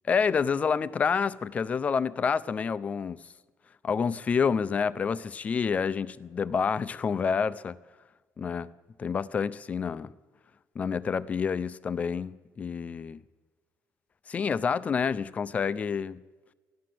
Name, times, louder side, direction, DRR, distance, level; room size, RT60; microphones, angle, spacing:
voice 1, 0.1-3.2 3.8-7.8 8.4-8.7 9.0-10.1 10.8-13.2 14.3-16.2, left 6 dB, 25° left, 0.4 m, -28 dB
14.0 x 11.5 x 7.6 m
cardioid pair, 175°, 6 cm